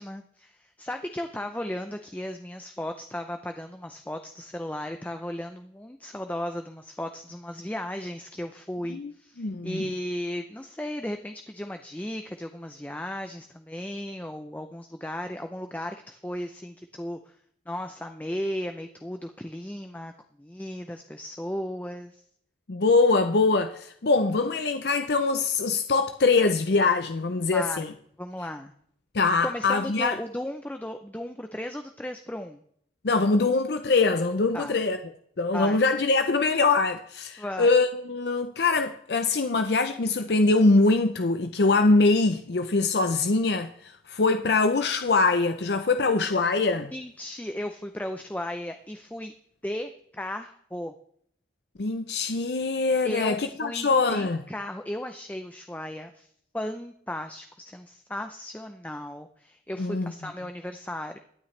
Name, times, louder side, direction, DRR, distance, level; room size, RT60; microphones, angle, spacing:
voice 1, 0.0-17.4 17.7-20.1 20.4-22.2 27.5-27.9 28.2-28.7 29.4-32.6 34.5-34.8 35.5-35.8 37.4-37.7 46.9-49.4 49.6-50.9 53.0-61.2, left 1 dB, 10° left, 0.5 m, -35 dB
voice 2, 9.4-9.8 22.7-27.9 29.1-30.2 33.0-35.0 35.4-46.9 51.8-54.4 59.8-60.1, left 3 dB, 75° left, 0.6 m, -23 dB
22.5 x 8.7 x 3.3 m
head